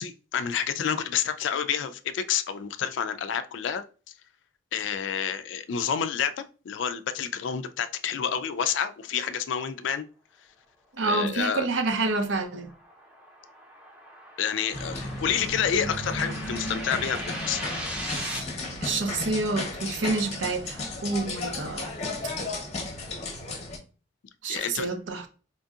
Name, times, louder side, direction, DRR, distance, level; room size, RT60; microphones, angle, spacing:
voice 1, 0.0-3.8 4.7-10.0 11.0-11.7 14.4-17.6 24.5-24.9, left 8 dB, 70° left, 0.3 m, -29 dB
voice 2, 11.0-12.7 18.8-21.9 24.4-25.3, right 3 dB, 75° right, 0.6 m, -28 dB
sound 1, 12.3-18.4, equal, 5° right, 0.7 m, -39 dB
sound 2, 14.7-23.8, left 2 dB, 35° left, 0.7 m, -34 dB
4.3 x 2.7 x 2.3 m
head